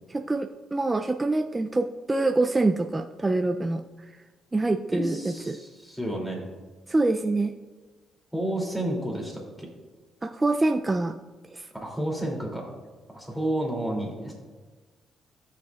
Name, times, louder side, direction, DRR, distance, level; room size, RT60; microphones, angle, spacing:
voice 1, 0.1-3.8 4.5-5.6 6.9-7.5 10.2-11.2 11.5-11.7, right 2 dB, 20° right, 6 dB, 0.3 m, -25 dB
voice 2, 4.9-6.4 8.3-9.7 11.8-12.7 13.1-14.3, right 1 dB, 5° left, -1 dB, 2.7 m, -30 dB
15.0 x 6.9 x 2.4 m, 1.3 s
cardioid pair, 90°, 0 cm